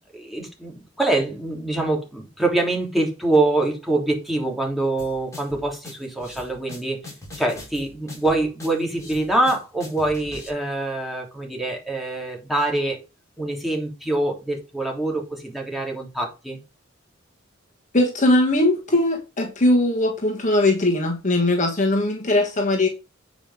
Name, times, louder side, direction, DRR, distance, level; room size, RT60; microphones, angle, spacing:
voice 1, 0.1-7.0 7.4-13.0 13.4-16.6, right 2 dB, ahead, 3.3 m, -24 dB
sound 1, 5.0-10.5, left 2 dB, 15° left, 4.9 m, -41 dB
voice 2, 17.9-22.9, left 1 dB, 40° left, 1.5 m, -20 dB
8.8 x 5.2 x 5.0 m
head